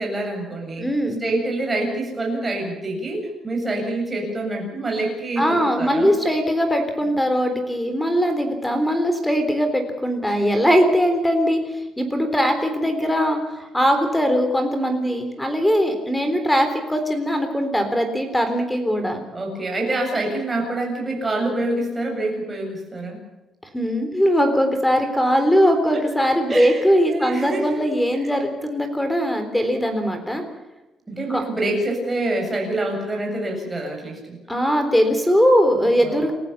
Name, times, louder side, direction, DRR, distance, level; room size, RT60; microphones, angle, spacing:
voice 1, 0.0-0.9 1.2-6.1 10.3-10.4 19.3-23.2 26.5-27.8 28.2-28.3 31.1-34.4 36.0-36.2, right 2 dB, 15° right, 0 dB, 7.9 m, -26 dB
voice 2, 0.8-1.2 5.4-11.6 12.0-19.2 23.7-30.4 31.3-31.4 34.5-36.3, equal, 5° left, 7 dB, 3.7 m, -20 dB
29.0 x 15.5 x 7.1 m, 1.0 s
cardioid pair, 165°, 0 cm